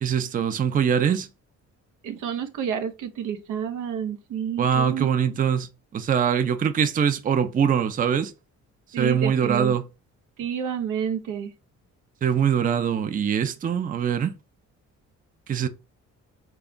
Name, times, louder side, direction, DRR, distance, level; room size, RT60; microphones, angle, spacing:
voice 1, 0.0-1.3 4.6-8.3 9.0-9.8 12.2-14.3 15.5-15.7, right 7 dB, 30° right, 0.4 m, -23 dB
voice 2, 2.0-5.1 8.9-9.7 10.4-11.5, right 8 dB, 85° right, 0.6 m, -29 dB
3.4 x 2.3 x 3.7 m
cardioid pair, 90°, 30 cm